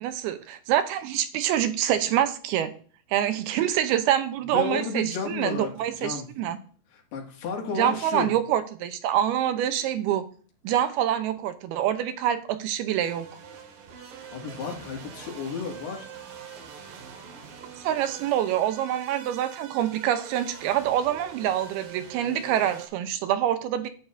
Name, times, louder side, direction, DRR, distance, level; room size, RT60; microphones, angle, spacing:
voice 1, 0.0-2.8 3.1-6.6 7.7-10.3 10.6-13.3 17.8-23.9, right 11 dB, 85° right, 2.7 m, -26 dB
voice 2, 4.5-5.7 6.0-6.3 6.9-8.3 14.3-16.1, left 5 dB, 90° left, 4.1 m, -32 dB
sound 1, 13.0-22.9, right 7 dB, 65° right, 2.9 m, -44 dB
11.5 x 8.9 x 2.6 m
omnidirectional pair, 4.5 m